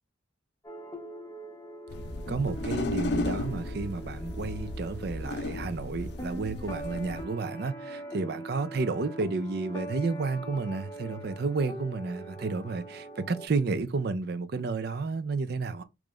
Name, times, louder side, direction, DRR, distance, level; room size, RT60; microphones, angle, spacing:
sound 1, 0.6-13.5, right 1 dB, 15° left, 0.6 m, -43 dB
sound 2, 1.9-7.2, left 2 dB, 55° left, 0.5 m, -34 dB
voice 1, 2.3-15.8, right 4 dB, 50° right, 0.4 m, -31 dB
3.0 x 2.4 x 3.7 m
head